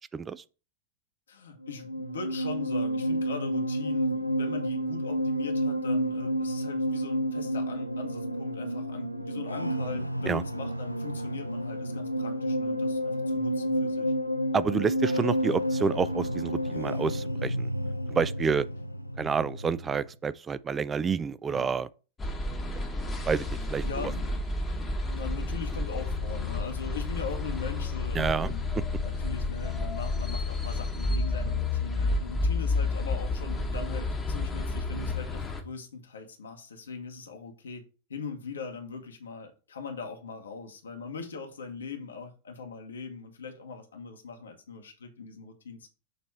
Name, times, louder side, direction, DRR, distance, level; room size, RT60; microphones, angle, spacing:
voice 1, 0.1-0.4 10.2-10.4 14.5-17.7 18.1-18.7 19.2-21.9 23.3-24.1 28.1-28.5, right 6 dB, 20° right, 0.3 m, -29 dB
voice 2, 1.3-14.1 21.5-21.7 23.8-24.4 25.1-28.6 29.0-37.8 38.1-45.9, left 5 dB, 70° left, 1.0 m, -40 dB
sound 1, 1.6-20.1, equal, 90° left, 0.4 m, -30 dB
sound 2, 22.2-35.6, left 3 dB, 15° left, 1.0 m, -30 dB
6.6 x 3.0 x 4.7 m
figure-of-eight pair, 90°, 0 cm